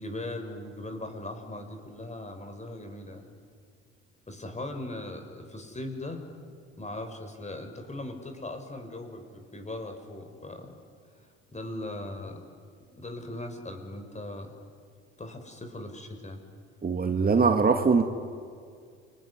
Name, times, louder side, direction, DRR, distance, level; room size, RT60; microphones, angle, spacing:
voice 1, 0.0-3.3 4.3-6.2 6.8-10.8 11.5-12.4 12.9-14.5 15.2-16.4, left 1 dB, 20° left, 6 dB, 5.5 m, -39 dB
voice 2, 16.8-18.0, right 5 dB, 30° right, 6 dB, 2.0 m, -22 dB
28.5 x 21.0 x 9.7 m, 2.1 s
hypercardioid pair, 60°, 31 cm